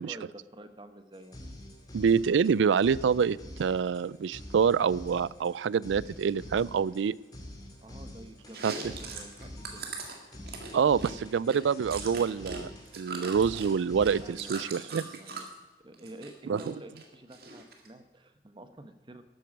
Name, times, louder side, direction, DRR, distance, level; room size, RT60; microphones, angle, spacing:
voice 1, 0.0-1.4 7.8-9.9 14.2-15.5 15.8-19.2, right 1 dB, 25° right, 10 dB, 0.9 m, -48 dB
sound 1, 1.1-14.6, left 1 dB, 20° left, 2.3 m, -47 dB
voice 2, 1.9-7.2 8.6-8.7 10.7-12.7 13.0-15.1 16.5-16.7, right 6 dB, 85° right, 22 dB, 0.4 m, -26 dB
Chewing mastication, 8.5-12.6 12.9-15.5 15.9-16.7 17.0-17.9, right 4 dB, 55° right, 1.9 m, -41 dB
12.5 x 9.2 x 6.1 m, 1.1 s
head